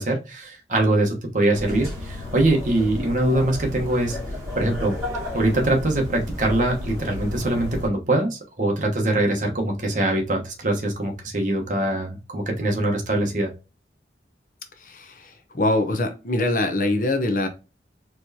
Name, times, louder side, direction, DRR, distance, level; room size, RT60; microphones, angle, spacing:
voice 1, 0.0-4.2 4.5-5.0 5.3-13.5, right 1 dB, 45° right, 2 dB, 1.1 m, -23 dB
sound 1, 1.5-7.9, left 1 dB, 20° right, 2.1 m, -32 dB
voice 2, 14.8-17.5, left 2 dB, 45° left, 6 dB, 0.8 m, -24 dB
4.4 x 3.2 x 2.8 m, 0.29 s
head